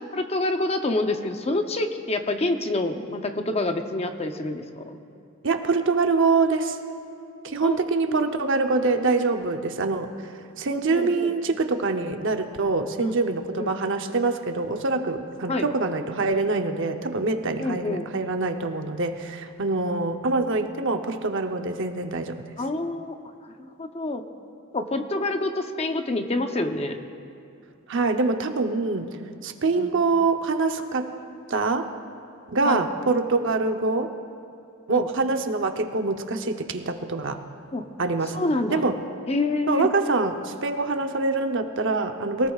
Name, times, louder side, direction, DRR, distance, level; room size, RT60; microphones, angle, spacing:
voice 1, 0.1-5.0 7.6-7.8 8.1-8.3 10.7-11.3 13.0-13.2 13.5-13.8 15.5-15.7 17.6-18.1 22.6-23.2 23.6-24.2 24.7-27.0 29.8-29.9 32.6-32.8 34.9-35.1 37.7-37.9 38.3-38.8 39.3-39.9, left 2 dB, 30° left, 6 dB, 0.7 m, -27 dB
voice 2, 5.4-6.8 7.4-10.1 10.6-22.4 27.9-29.1 29.4-31.1 31.5-31.9 32.5-34.1 34.9-37.4 38.0-38.4 38.7-39.0 39.7-42.5, right 3 dB, 60° right, 6 dB, 0.8 m, -25 dB
23.0 x 18.5 x 2.4 m, 2.5 s
head